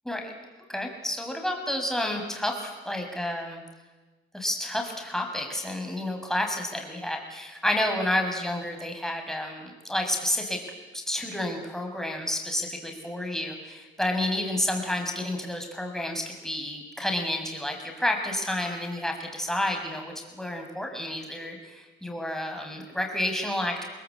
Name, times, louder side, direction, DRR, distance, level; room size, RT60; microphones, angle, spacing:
voice 1, 0.7-3.6 4.3-10.6 11.1-23.8, left 1 dB, ahead, 2 dB, 7.0 m, -30 dB
29.0 x 21.0 x 8.6 m, 1.2 s
cardioid pair, 90°, 20 cm